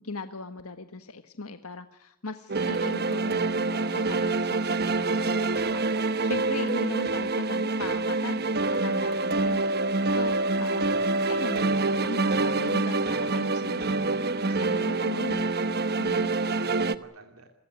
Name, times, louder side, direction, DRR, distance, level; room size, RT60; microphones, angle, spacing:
voice 1, 0.0-10.8 11.3-11.6 12.0-15.4 16.0-16.3, left 3 dB, 80° left, 9 dB, 1.5 m, -39 dB
sound 1, 2.5-17.0, right 3 dB, 45° right, 1.1 m, -26 dB
voice 2, 10.8-11.4 11.7-12.1 14.1-15.5 16.1-17.5, right 2 dB, 75° right, 4 dB, 2.7 m, -47 dB
29.5 x 16.5 x 9.5 m, 0.77 s
head